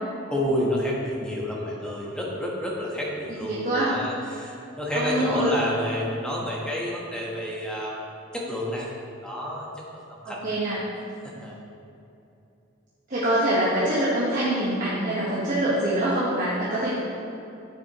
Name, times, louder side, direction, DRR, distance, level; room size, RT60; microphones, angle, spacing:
voice 1, 0.3-8.1 8.3-8.9 9.2-10.5 11.2-11.6, equal, 5° left, -4 dB, 1.2 m, -29 dB
voice 2, 3.4-3.9 4.9-5.5 10.2-10.8 13.1-16.9, right 1 dB, 45° right, -9 dB, 1.4 m, -25 dB
9.9 x 7.3 x 3.0 m, 2.7 s
head